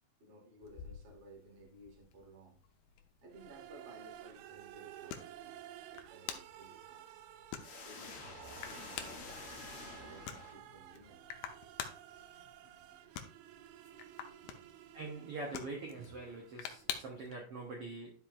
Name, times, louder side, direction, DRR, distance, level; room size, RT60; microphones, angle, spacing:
voice 1, 0.2-2.6 3.2-7.1 7.8-9.4 9.8-11.2 12.6-13.0 14.4-14.8, right 1 dB, 35° right, -1 dB, 1.1 m, -58 dB
sound 1, 0.6-17.3, left 9 dB, 80° left, 2.3 m, -49 dB
sound 2, 3.3-17.2, right 12 dB, 80° right, 2.4 m, -54 dB
sound 3, 7.6-11.0, left 4 dB, 60° left, 2.0 m, -49 dB
voice 2, 14.9-18.1, right 3 dB, 65° right, -1 dB, 1.5 m, -44 dB
11.0 x 5.4 x 2.6 m, 0.41 s
omnidirectional pair, 4.6 m